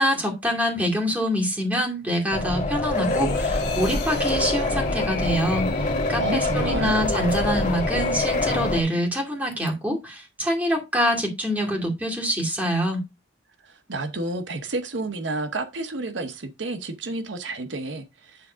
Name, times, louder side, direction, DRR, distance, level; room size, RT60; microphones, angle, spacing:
voice 1, 0.0-13.0, equal, 10° right, 2.3 m, -25 dB
sound 1, 2.3-8.8, left 2 dB, 45° left, 1.5 m, -25 dB
sound 2, 3.0-9.1 9.5-9.7, left 3 dB, 60° left, 1.5 m, -35 dB
voice 2, 6.2-7.0 13.6-18.5, right 2 dB, 75° right, 1.0 m, -30 dB
9.6 x 3.6 x 5.0 m
head